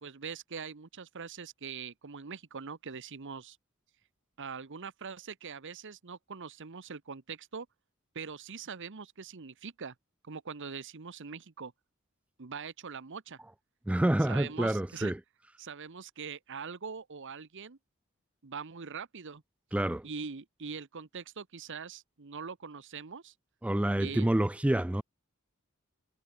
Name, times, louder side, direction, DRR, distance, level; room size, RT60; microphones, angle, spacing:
voice 1, 0.0-3.6 4.4-7.7 8.1-9.9 10.2-11.7 12.4-13.4 14.2-15.1 15.6-17.8 18.4-19.4 20.0-23.3 24.0-24.3, right 5 dB, 55° right, 0.9 m, -42 dB
voice 2, 13.9-15.2 19.7-20.0 23.6-25.0, right 1 dB, 5° right, 0.3 m, -28 dB
head